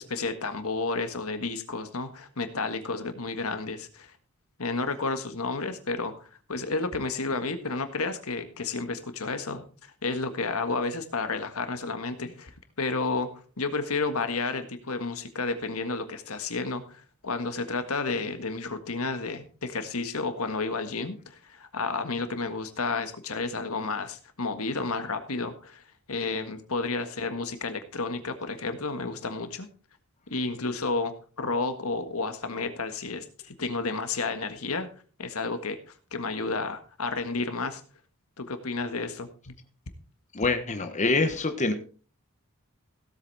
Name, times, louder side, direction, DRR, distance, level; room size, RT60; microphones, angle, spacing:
voice 1, 0.0-4.1 4.6-6.1 6.5-12.5 12.8-13.3 13.6-25.8 26.1-29.7 30.3-34.9 35.2-37.8 38.4-39.5, left 3 dB, 75° left, 8 dB, 1.6 m, -31 dB
voice 2, 40.3-41.7, left 3 dB, 35° left, 6 dB, 1.2 m, -25 dB
17.0 x 8.2 x 4.1 m, 0.38 s
head